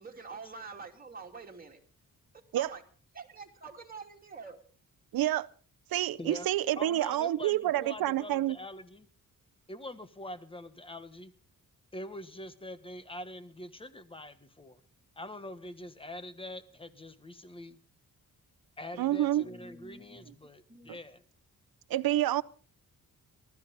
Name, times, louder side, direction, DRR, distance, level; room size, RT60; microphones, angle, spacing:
voice 1, 0.0-1.8 2.3-2.8 3.1-4.6 19.4-20.3 20.7-21.0, right 4 dB, 25° right, 2.9 m, -46 dB
voice 2, 5.1-5.5 5.9-8.6 19.0-19.4 21.9-22.4, right 13 dB, 85° right, 0.7 m, -28 dB
voice 3, 6.8-9.1 9.7-11.3 11.9-14.8 15.2-17.8 18.8-21.2, left 1 dB, 15° left, 1.4 m, -44 dB
20.0 x 13.5 x 4.1 m
cardioid pair, 105°, 35 cm